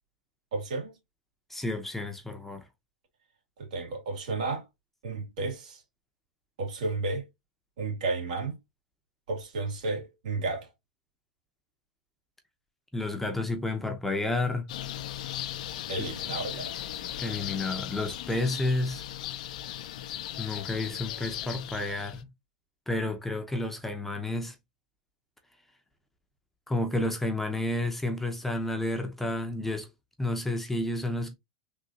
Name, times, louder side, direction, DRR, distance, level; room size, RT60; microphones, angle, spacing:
voice 1, 0.5-1.0 3.6-4.7 5.0-5.8 6.6-7.3 7.8-8.6 9.3-10.7 15.9-16.8, right 3 dB, 75° right, 2.3 m, -32 dB
voice 2, 1.5-2.6 12.9-14.6 17.2-19.0 20.4-22.3 22.9-24.5 26.7-29.9 30.2-31.3, left 2 dB, 5° left, 0.7 m, -31 dB
sound 1, 14.7-22.2, left 12 dB, 70° left, 0.5 m, -37 dB
3.7 x 2.7 x 2.8 m
hypercardioid pair, 115°, 4 cm